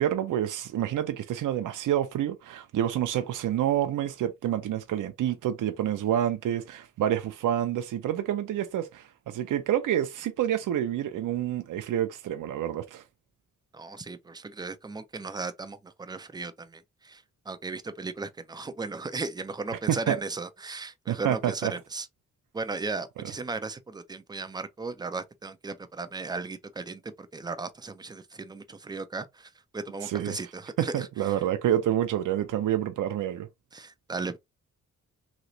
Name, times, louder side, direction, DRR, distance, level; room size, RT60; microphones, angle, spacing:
voice 1, 0.0-13.0 19.9-20.2 21.1-21.7 23.2-23.3 30.0-30.4 30.8-33.5, right 11 dB, 75° right, 0.5 m, -28 dB
voice 2, 13.7-22.1 22.5-31.1 33.7-34.4, right 3 dB, 15° right, 0.3 m, -36 dB
3.1 x 2.8 x 2.6 m
wide cardioid pair, 140°, 31 cm